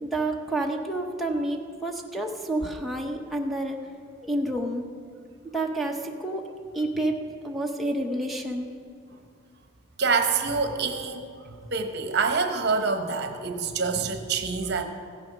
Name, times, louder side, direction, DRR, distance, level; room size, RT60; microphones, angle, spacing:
voice 1, 0.0-3.8 4.2-4.9 5.5-6.5 6.7-8.8, right 1 dB, ahead, 2 dB, 0.8 m, -29 dB
voice 2, 10.0-14.8, right 4 dB, 50° right, 7 dB, 1.0 m, -26 dB
15.5 x 9.6 x 6.1 m, 2.3 s
head